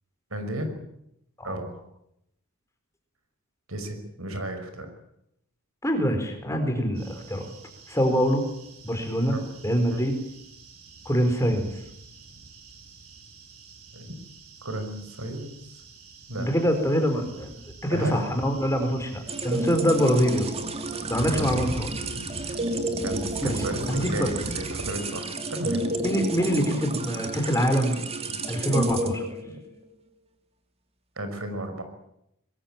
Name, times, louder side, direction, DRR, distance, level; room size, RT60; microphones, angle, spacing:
voice 1, 0.3-0.8 1.4-1.8 3.7-4.9 9.3-9.4 9.9-10.0 13.9-14.2 14.6-15.8 16.3-16.5 17.9-18.2 21.3-21.7 23.0-25.8 31.2-31.8, right 1 dB, 70° right, 8 dB, 5.5 m, -33 dB
voice 2, 5.8-7.5 7.9-8.4 8.8-9.3 9.6-10.2 11.0-11.7 16.4-17.5 17.8-20.5 21.0-21.9 23.4-23.6 23.9-24.3 26.0-28.0 28.5-29.6, equal, 15° left, 5 dB, 4.5 m, -24 dB
sound 1, 7.0-24.9, right 1 dB, 90° right, 6.7 m, -43 dB
sound 2, 19.3-29.8, right 2 dB, 30° right, 2.6 m, -31 dB
24.0 x 21.0 x 8.9 m, 0.80 s
head